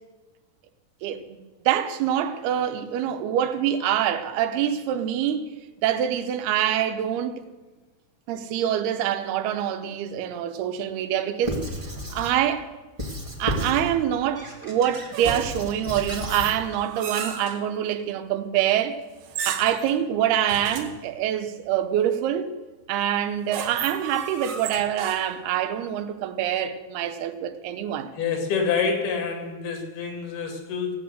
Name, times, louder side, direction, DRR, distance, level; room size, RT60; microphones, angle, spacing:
voice 1, 1.0-1.4 1.7-5.5 5.8-7.4 8.3-11.6 12.1-12.7 13.4-19.0 19.5-22.5 22.9-28.1, right 10 dB, 85° right, 2.9 m, -25 dB
Squeak / Writing, 11.4-12.4 13.0-13.9 14.3-16.6, equal, 20° right, 0.8 m, -32 dB
sound 1, 15.1-15.7 16.3-17.6 19.2-19.9 20.5-21.0 23.2-25.5, right 7 dB, 70° right, 3.0 m, -34 dB
voice 2, 28.2-31.0, left 6 dB, 75° left, 4.3 m, -27 dB
17.0 x 8.7 x 7.9 m
omnidirectional pair, 4.4 m